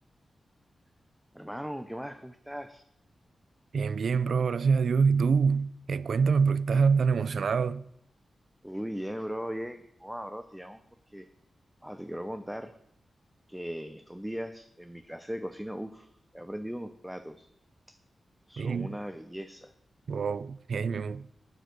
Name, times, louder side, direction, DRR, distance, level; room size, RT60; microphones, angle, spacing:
voice 1, 1.3-2.8 8.6-10.8 11.1-11.3 11.8-12.7 13.5-17.5 18.5-19.7, equal, 5° right, 0.5 m, -38 dB
voice 2, 3.7-7.9 18.6-19.0 20.1-21.3, right 5 dB, 60° right, 0.4 m, -26 dB
9.2 x 7.9 x 6.5 m
wide cardioid pair, 175°, 0 cm